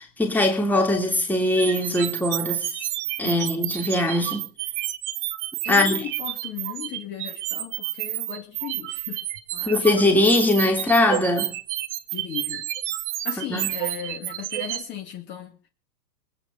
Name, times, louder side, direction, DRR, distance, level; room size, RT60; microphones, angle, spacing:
voice 1, 0.0-2.7 3.2-4.5 5.7-6.0 9.6-11.5 13.5-13.7, left 1 dB, 5° left, 3.0 m, -21 dB
sound 1, 1.6-14.8, right 15 dB, 40° right, 1.7 m, -30 dB
voice 2, 3.2-3.8 5.6-9.2 9.5-10.0 12.1-12.7 13.2-15.7, left 10 dB, 20° left, 2.3 m, -36 dB
20.0 x 9.1 x 6.8 m
hypercardioid pair, 155°, 49 cm